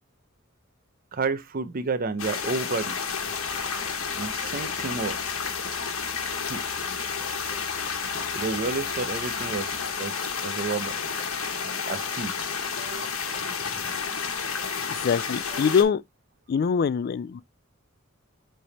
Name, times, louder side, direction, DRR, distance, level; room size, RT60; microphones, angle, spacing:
voice 1, 1.1-3.0 4.2-5.2 6.5-6.6 8.3-11.0 11.9-12.3 12.8-13.2 15.5-15.8, right 4 dB, 45° right, 0.6 m, -31 dB
sound 1, 2.2-15.8, left 6 dB, 90° left, 1.4 m, -31 dB
Musical instrument, 3.2-10.0, equal, 10° left, 2.7 m, -52 dB
voice 2, 14.9-16.0 16.5-17.4, left 6 dB, 50° left, 0.3 m, -23 dB
7.6 x 3.4 x 4.0 m
head